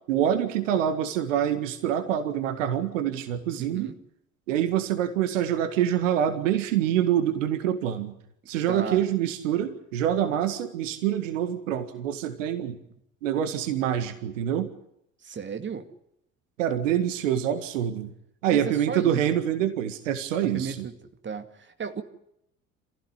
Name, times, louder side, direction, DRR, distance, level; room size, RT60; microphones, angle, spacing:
voice 1, 0.1-3.9 4.5-8.1 8.5-12.8 13.2-14.7 16.6-18.1 18.4-20.9, right 10 dB, 70° right, 9 dB, 1.9 m, -26 dB
voice 2, 3.6-4.0 8.7-9.0 15.2-15.9 18.5-19.2 20.4-20.9 21.2-22.0, right 6 dB, 30° right, 7 dB, 2.3 m, -34 dB
27.0 x 16.0 x 9.9 m, 0.79 s
figure-of-eight pair, 60°, 40 cm